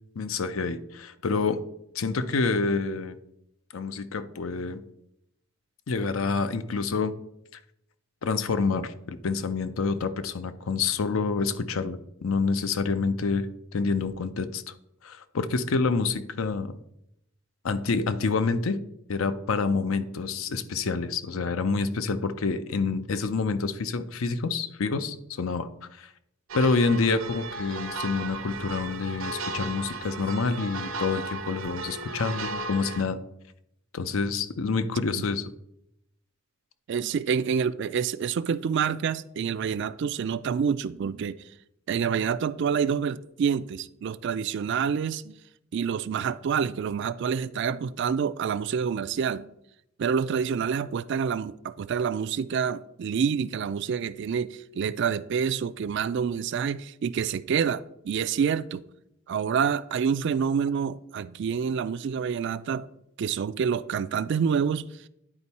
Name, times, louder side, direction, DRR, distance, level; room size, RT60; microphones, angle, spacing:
voice 1, 0.2-1.6 1.9-3.2 3.7-4.8 5.9-7.1 8.2-13.5 13.7-14.7 15.0-16.7 17.6-18.8 19.1-26.1 26.5-33.2 33.9-35.5, left 4 dB, 80° left, 0.6 m, -27 dB
sound 1, 26.5-33.0, right 3 dB, 75° right, 0.7 m, -35 dB
voice 2, 36.9-41.4 41.9-45.3 45.7-49.5 50.0-58.8 59.3-62.8 63.2-64.9, right 7 dB, 60° right, 0.3 m, -27 dB
9.9 x 4.4 x 4.1 m
head